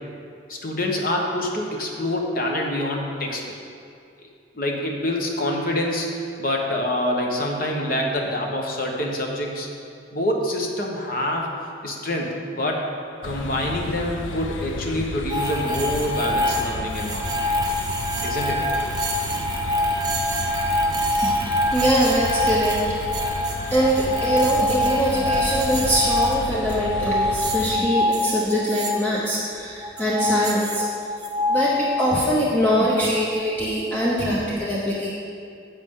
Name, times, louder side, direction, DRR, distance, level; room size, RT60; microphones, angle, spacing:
voice 1, 0.5-3.4 4.2-4.3 4.5-9.7 10.1-11.5 11.8-12.9 13.2-17.3 18.2-18.6, left 1 dB, 45° left, 0 dB, 1.1 m, -26 dB
sound 1, 13.2-27.8, left 3 dB, 85° left, 0.5 m, -33 dB
sound 2, 15.3-29.0 29.8-32.4, left 1 dB, 20° right, 0.8 m, -25 dB
voice 2, 21.2-23.0 23.7-30.8 31.5-35.1, equal, 10° left, -7 dB, 0.9 m, -23 dB
10.5 x 7.4 x 3.7 m, 2.4 s
head